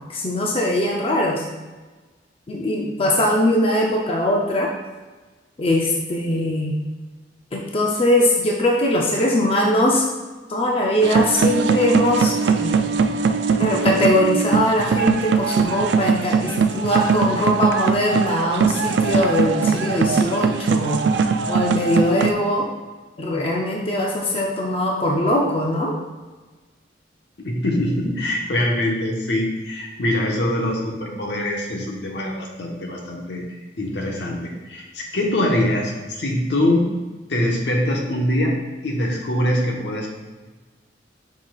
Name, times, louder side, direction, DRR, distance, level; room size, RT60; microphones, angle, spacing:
voice 1, 0.1-1.4 2.5-4.7 5.6-6.8 7.5-10.0 10.5-12.9 13.6-21.0 21.5-22.7 23.2-26.0, left 1 dB, 35° left, -1 dB, 0.6 m, -21 dB
sound 1, 11.0-22.3, right 5 dB, 80° right, 0.4 m, -20 dB
voice 2, 27.4-33.4 33.8-36.9 37.3-38.5 38.8-40.1, left 1 dB, 75° left, -1 dB, 1.2 m, -23 dB
7.8 x 5.6 x 2.4 m, 1.3 s
head